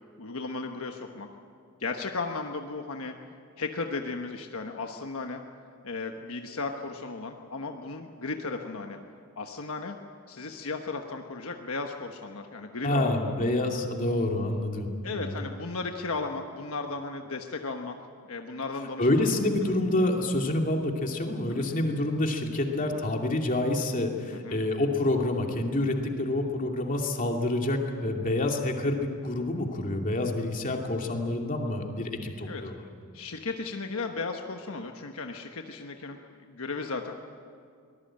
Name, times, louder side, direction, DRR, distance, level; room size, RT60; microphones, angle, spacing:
voice 1, 0.2-1.3 1.8-3.1 3.6-5.4 5.8-9.0 9.4-10.0 10.3-13.4 15.0-18.0 18.2-19.3 19.6-19.7 21.5-21.6 24.3-24.6 32.5-32.6 33.1-36.2 36.5-37.1, left 3 dB, 70° left, 4 dB, 1.2 m, -35 dB
voice 2, 12.8-15.3 19.0-32.8, left 1 dB, 40° left, 2 dB, 2.6 m, -27 dB
24.0 x 20.0 x 8.8 m, 2.3 s
head